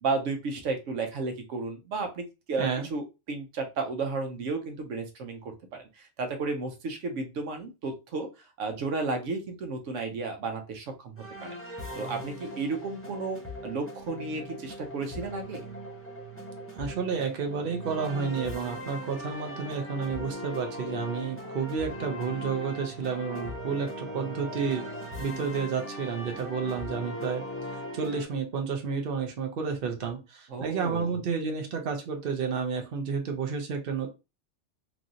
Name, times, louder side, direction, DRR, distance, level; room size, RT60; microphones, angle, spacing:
voice 1, 0.0-8.3 8.6-11.1 11.4-11.6 11.9-15.7 30.5-31.2, right 3 dB, 85° right, 5 dB, 1.0 m, -33 dB
sound 1, 11.2-28.2, equal, 15° left, 0.5 m, -39 dB
voice 2, 16.8-24.9 25.2-27.5 27.9-34.1, right 6 dB, 55° right, 4 dB, 0.9 m, -31 dB
3.1 x 2.6 x 2.5 m, 0.27 s
omnidirectional pair, 1.2 m